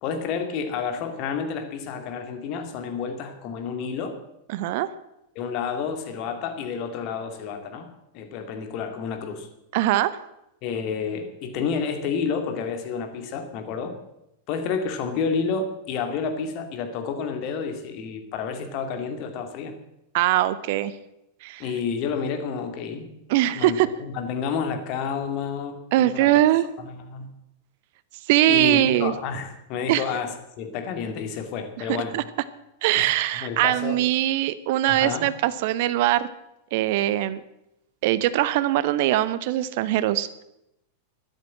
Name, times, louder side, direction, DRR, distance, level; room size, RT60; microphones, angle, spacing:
voice 1, 0.0-4.2 5.4-7.9 8.1-9.5 10.6-13.9 14.5-19.7 21.6-23.1 23.5-26.3 26.8-27.3 28.5-32.1 33.0-34.0 34.9-35.3, left 6 dB, 40° left, 6 dB, 2.5 m, -30 dB
voice 2, 4.5-4.9 9.7-10.1 20.1-20.9 21.4-21.6 23.3-23.9 25.9-26.7 28.3-29.1 29.9-30.0 31.9-32.2 32.8-36.3 36.7-37.4 38.0-40.4, right 14 dB, 50° right, 15 dB, 0.8 m, -22 dB
13.0 x 12.0 x 7.6 m, 0.85 s
figure-of-eight pair, 90°, 0 cm